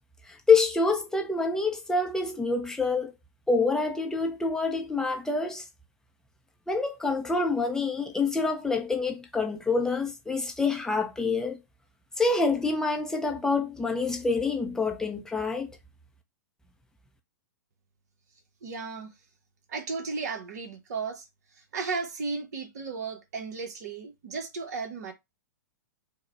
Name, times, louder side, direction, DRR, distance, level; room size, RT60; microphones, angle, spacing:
voice 1, 0.3-3.1 3.5-5.7 6.7-11.6 12.2-15.7, left 4 dB, 5° left, 0.7 m, -26 dB
voice 2, 18.6-19.1 19.7-21.3 21.7-25.1, right 4 dB, 60° right, 1.4 m, -34 dB
4.5 x 2.4 x 4.3 m
figure-of-eight pair, 110°, 10 cm